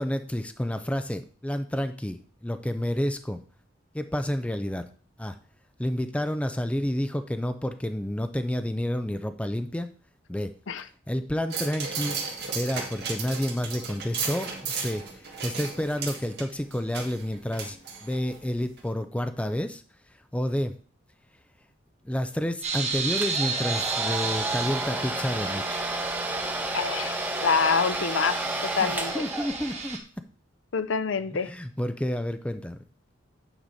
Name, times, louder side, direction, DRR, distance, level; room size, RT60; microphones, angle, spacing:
voice 1, 0.0-3.4 3.9-4.8 5.2-5.4 5.8-9.9 10.3-10.5 11.1-17.8 18.0-19.8 20.3-20.7 22.0-25.8 28.8-30.0 31.4-32.8, equal, 5° left, 0.4 m, -30 dB
sound 1, 11.5-18.4 18.8-18.9, right 5 dB, 55° right, 1.9 m, -35 dB
sound 2, 22.6-30.0, right 5 dB, 35° right, 1.2 m, -33 dB
Domestic sounds home sounds, 23.2-29.9, right 1 dB, 10° right, 0.8 m, -32 dB
voice 2, 26.7-27.2 27.4-29.2 30.7-31.5, left 5 dB, 70° left, 0.5 m, -26 dB
8.9 x 4.9 x 4.1 m
head